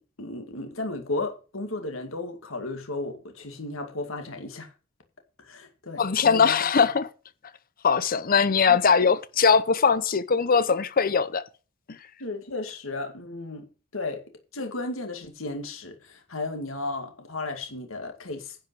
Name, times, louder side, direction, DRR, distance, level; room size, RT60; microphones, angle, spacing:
voice 1, 0.2-4.7 5.4-6.9 8.7-8.8 12.2-13.7 13.9-14.2 14.5-18.6, left 2 dB, 70° left, 2.1 m, -34 dB
voice 2, 6.0-7.1 7.8-11.4 11.9-12.0, left 6 dB, 45° left, 0.7 m, -21 dB
10.5 x 5.5 x 7.4 m
head